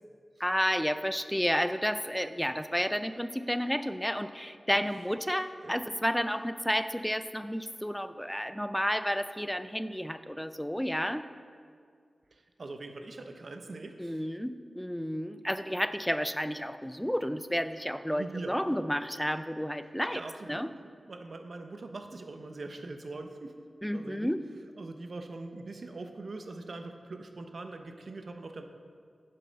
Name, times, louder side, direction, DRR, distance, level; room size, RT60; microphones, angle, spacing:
voice 1, 0.4-11.2 14.0-20.2 20.5-20.7 23.8-24.4, equal, 5° left, 11 dB, 0.4 m, -31 dB
voice 2, 12.3-14.2 18.1-18.6 20.1-20.8 21.0-23.6 23.9-24.3 24.8-28.6, right 3 dB, 60° right, 6 dB, 0.7 m, -42 dB
10.5 x 5.5 x 5.2 m, 2.1 s
wide cardioid pair, 90°, 0 cm